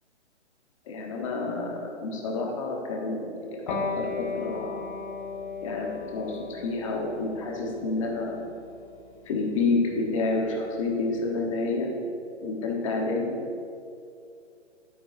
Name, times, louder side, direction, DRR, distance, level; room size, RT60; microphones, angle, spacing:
voice 1, 0.9-4.8 5.6-8.4 9.2-11.9 12.4-13.6, left 3 dB, 30° left, 0 dB, 1.1 m, -29 dB
Electric guitar, 3.7-10.8, left 5 dB, 45° left, 1.4 m, -37 dB
11.5 x 9.2 x 2.6 m, 2.5 s
hypercardioid pair, 165°, 35 cm